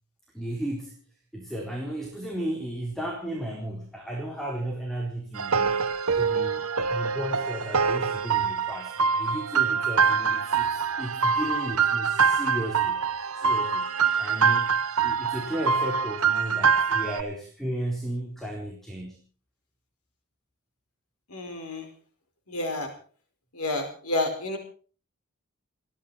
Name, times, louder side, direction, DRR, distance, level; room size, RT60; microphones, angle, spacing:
voice 1, 0.3-1.0 1.3-5.8 6.2-13.9 14.2-19.2, right 1 dB, ahead, -1 dB, 4.1 m, -34 dB
sound 1, 5.3-17.2, right 6 dB, 75° right, 1.3 m, -25 dB
voice 2, 21.3-21.9 22.5-22.9 23.5-24.6, left 2 dB, 80° left, 4 dB, 5.1 m, -30 dB
30.0 x 11.0 x 4.3 m, 0.41 s
head